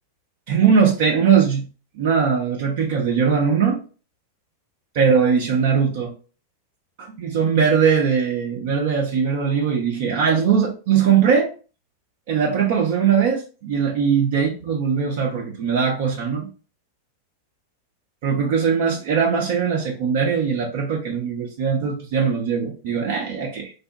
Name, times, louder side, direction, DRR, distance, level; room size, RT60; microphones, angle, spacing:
voice 1, 0.5-1.7 2.0-3.8 4.9-6.1 7.0-11.5 12.3-16.5 18.2-23.7, right 6 dB, 50° right, -1 dB, 0.6 m, -20 dB
3.2 x 2.1 x 2.7 m, 0.35 s
figure-of-eight pair, 90°, 0 cm